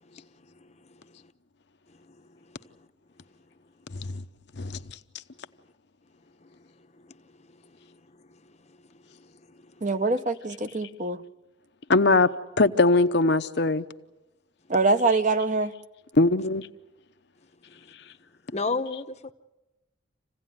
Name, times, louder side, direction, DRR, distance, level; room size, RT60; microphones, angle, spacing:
voice 1, 0.5-0.9 2.1-2.2 8.7-8.8 9.2-9.7 18.5-19.3, left 3 dB, 35° left, 0.8 m, -33 dB
voice 2, 9.8-11.2 14.7-15.7, right 3 dB, 40° right, 0.8 m, -24 dB
voice 3, 11.9-12.3 12.6-13.8 16.1-16.7, left 3 dB, 60° left, 0.8 m, -21 dB
27.5 x 16.5 x 9.4 m
head